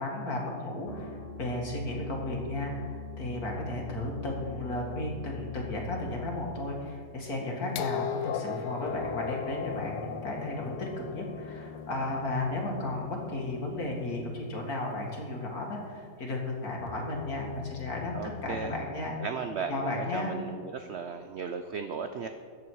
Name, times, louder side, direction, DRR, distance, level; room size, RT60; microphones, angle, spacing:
voice 1, 0.0-19.2 19.7-20.4, left 2 dB, 60° left, -1 dB, 2.4 m, -34 dB
sound 1, 0.9-7.1 8.9-15.2 16.9-18.9, left 6 dB, 40° left, 0.5 m, -44 dB
sound 2, 7.8-13.6 14.7-14.8, left 8 dB, 80° left, 1.2 m, -37 dB
voice 2, 18.1-18.7 19.2-22.3, right 5 dB, 80° right, 7 dB, 0.6 m, -36 dB
14.0 x 8.5 x 4.7 m, 2.1 s
omnidirectional pair, 1.8 m